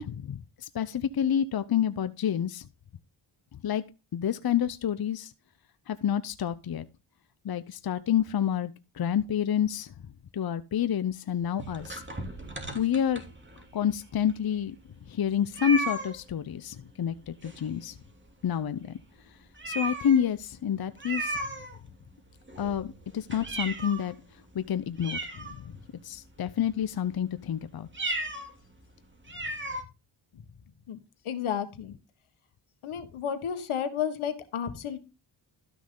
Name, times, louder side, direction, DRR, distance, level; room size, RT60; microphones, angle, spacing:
voice 1, 0.0-2.6 3.6-3.8 4.1-5.3 5.9-6.8 7.4-9.9 10.3-12.0 12.7-13.2 13.7-14.8 15.1-18.0 18.4-19.0 19.7-21.4 22.6-24.1 24.5-25.7 26.0-27.9, left 9 dB, 50° left, 0.8 m, -28 dB
sound 1, 11.6-13.7 14.3-14.4 14.6-14.7 15.5-16.2 17.4-18.0 18.3-18.4 18.9-19.0 19.6-20.3 21.0-22.1 22.5-24.1 24.6-24.7 25.0-26.0 26.5-26.8 27.9-28.5 28.8-28.9 29.3-29.8, right 1 dB, 25° right, 2.8 m, -35 dB
voice 2, 31.2-31.9 32.8-35.0, left 8 dB, 85° left, 1.6 m, -32 dB
12.5 x 6.0 x 3.9 m
cardioid pair, 60°, 48 cm